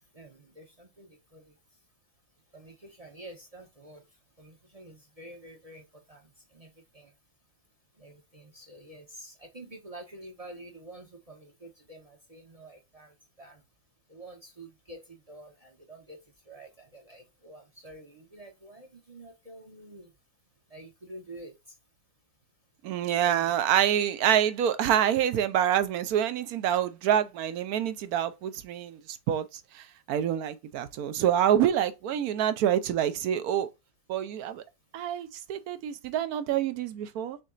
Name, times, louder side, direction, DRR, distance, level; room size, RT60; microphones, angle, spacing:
voice 1, 0.1-1.5 2.5-4.0 4.4-7.1 8.0-13.6 14.1-20.1 20.7-21.5 23.2-23.5, right 1 dB, 35° right, 0.6 m, -48 dB
voice 2, 22.8-33.7 34.1-34.6 34.9-37.4, right 10 dB, 70° right, 1.0 m, -27 dB
6.4 x 2.8 x 2.5 m
omnidirectional pair, 1.9 m